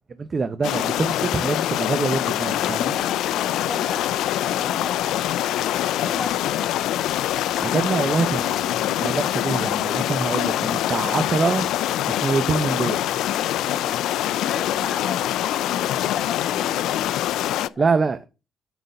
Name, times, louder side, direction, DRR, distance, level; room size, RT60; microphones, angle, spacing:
voice 1, 0.2-2.9 7.6-11.7 12.1-13.0 17.8-18.2, right 4 dB, 35° right, 0.8 m, -25 dB
sound 1, 0.6-17.7, left 13 dB, 85° left, 0.4 m, -24 dB
voice 2, 2.9-4.2 4.5-5.1 5.8-6.6 13.4-17.0 17.5-18.2, left 3 dB, 20° left, 2.4 m, -38 dB
9.3 x 4.0 x 6.6 m
cardioid pair, 90°, 0 cm